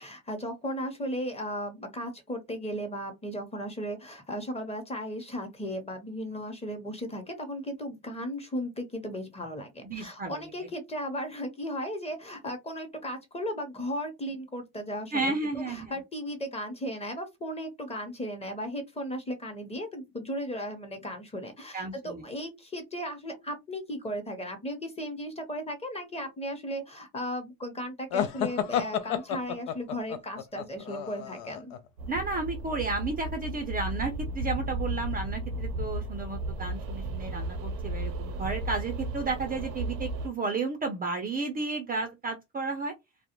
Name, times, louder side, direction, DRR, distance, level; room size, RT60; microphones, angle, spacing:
voice 1, 0.0-31.7, equal, 15° left, 0.9 m, -36 dB
voice 2, 9.8-10.5 15.1-15.9 21.7-22.3 32.1-42.9, right 3 dB, 25° right, 0.5 m, -32 dB
sound 1, 28.1-31.8, left 9 dB, 80° left, 0.5 m, -31 dB
sound 2, 32.0-40.3, right 1 dB, 90° right, 0.7 m, -34 dB
2.3 x 2.1 x 2.9 m
supercardioid pair, 90°, 39 cm